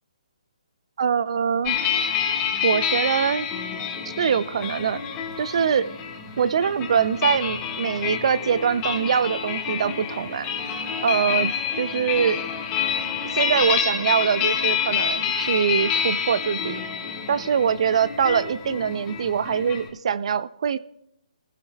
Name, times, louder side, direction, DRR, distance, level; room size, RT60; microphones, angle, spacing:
voice 1, 1.0-1.8 2.6-3.5 4.2-5.0 5.4-5.9 6.4-10.5 11.0-12.4 13.3-16.8 17.3-20.8, right 7 dB, 55° right, 17 dB, 0.5 m, -23 dB
sound 1, 1.7-19.9, left 7 dB, 20° left, 1.7 m, -28 dB
29.0 x 15.5 x 2.3 m, 0.80 s
hypercardioid pair, 155°, 4 cm